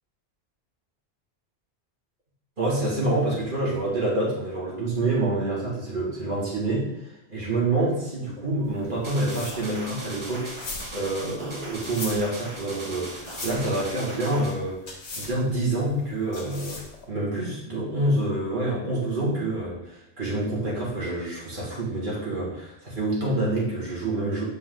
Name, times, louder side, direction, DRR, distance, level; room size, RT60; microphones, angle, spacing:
voice 1, 2.6-10.5 10.9-16.8 17.1-24.4, right 2 dB, 50° right, -6 dB, 2.8 m, -27 dB
sound 1, 8.6-17.1, left 2 dB, 80° left, 1.7 m, -40 dB
sound 2, 9.0-14.6, right 1 dB, 25° right, 1.1 m, -39 dB
7.7 x 5.3 x 3.9 m, 0.83 s
omnidirectional pair, 1.1 m